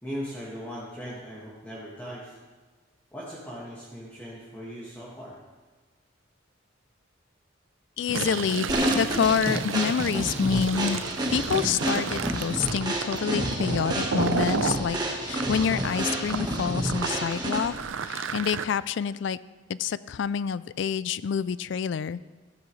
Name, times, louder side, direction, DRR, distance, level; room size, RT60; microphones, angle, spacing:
voice 1, 0.0-2.4 3.1-5.4, equal, 10° left, -8 dB, 1.8 m, -39 dB
voice 2, 8.0-11.0 11.3-15.0 15.2-17.7 18.1-19.4 19.7-22.2, left 7 dB, 65° left, 17 dB, 0.3 m, -27 dB
Fill (with liquid), 8.0-14.8 15.3-18.6, right 5 dB, 80° right, 0.6 m, -32 dB
sound 1, 8.7-17.8, right 1 dB, 20° right, 1.5 m, -29 dB
14.5 x 13.5 x 3.2 m, 1.3 s
head